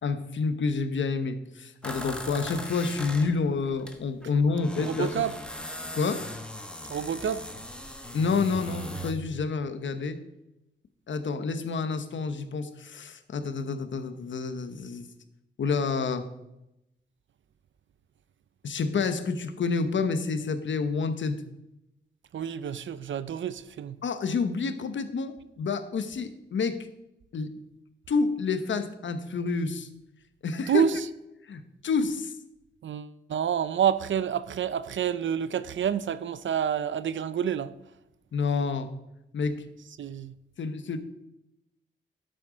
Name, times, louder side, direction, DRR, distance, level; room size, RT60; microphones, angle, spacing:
voice 1, 0.0-5.1 5.9-6.2 8.1-10.2 11.1-15.1 15.6-16.3 18.6-21.4 24.0-26.9 27.3-27.5 28.1-29.9 30.4-30.8 31.4-32.3 38.3-38.9 39.3-39.6 40.6-41.0, left 4 dB, 70° left, 1.0 m, -28 dB
sound 1, 1.8-9.1, left 1 dB, 5° left, 1.2 m, -39 dB
voice 2, 4.8-5.3 6.9-7.5 22.3-24.0 30.7-31.0 32.8-37.7 40.0-40.3, right 8 dB, 70° right, 0.6 m, -28 dB
12.0 x 7.9 x 5.1 m
wide cardioid pair, 150°, 20 cm